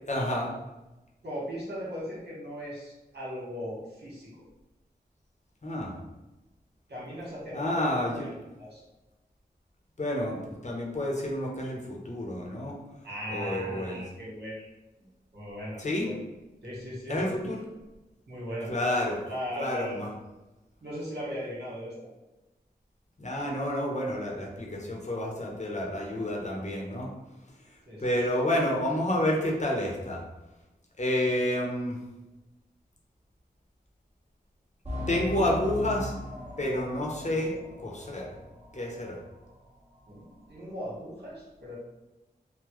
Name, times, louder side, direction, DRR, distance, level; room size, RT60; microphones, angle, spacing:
voice 1, 0.1-0.5 5.6-5.9 7.5-8.3 10.0-12.7 13.3-14.0 15.8-16.1 17.1-17.6 18.7-19.2 19.6-20.1 23.2-27.1 28.0-30.2 31.0-32.0 35.1-36.1 36.6-37.5 37.8-38.3 38.7-39.2, left 1 dB, 45° left, -2 dB, 0.9 m, -29 dB
voice 2, 1.2-4.3 6.9-7.9 8.2-8.3 8.6-8.8 13.0-14.7 15.3-16.1 16.6-17.3 18.3-18.7 19.2-20.0 20.8-22.1 27.9-28.0 40.1-41.8, equal, 75° right, -6 dB, 1.5 m, -38 dB
sound 1, 34.8-39.1 39.4-39.5 40.1-40.2, left 2 dB, 35° right, 1.2 m, -39 dB
3.7 x 2.2 x 3.1 m, 1.0 s
cardioid pair, 50°, 17 cm